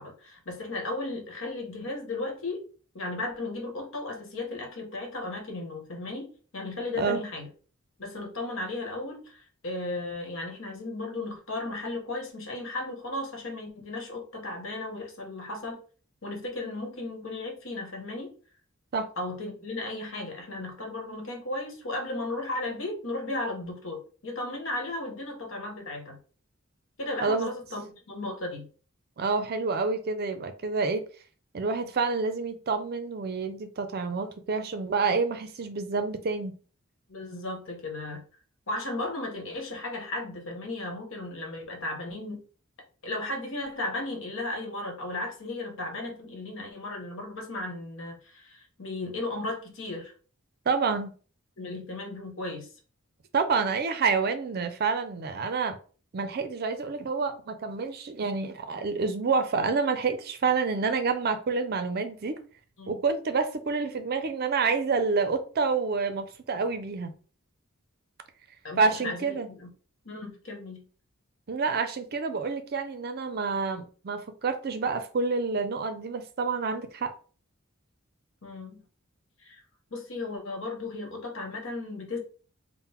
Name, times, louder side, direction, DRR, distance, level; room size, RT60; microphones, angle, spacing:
voice 1, 0.0-2.6 2.9-7.5 8.0-15.8 16.2-18.3 19.2-26.2 27.0-28.7 37.1-38.2 38.7-42.4 43.0-50.1 51.6-52.7 62.8-63.0 68.6-69.7 70.0-70.9 78.4-78.8 79.4-79.6 79.9-82.2, left 2 dB, 70° left, 1.2 m, -35 dB
voice 2, 27.2-27.5 29.2-31.0 31.5-36.5 50.7-51.1 53.3-55.8 56.1-62.4 62.9-67.1 68.8-69.5 71.5-77.1, right 4 dB, 50° right, 0.5 m, -28 dB
3.7 x 2.1 x 4.3 m
head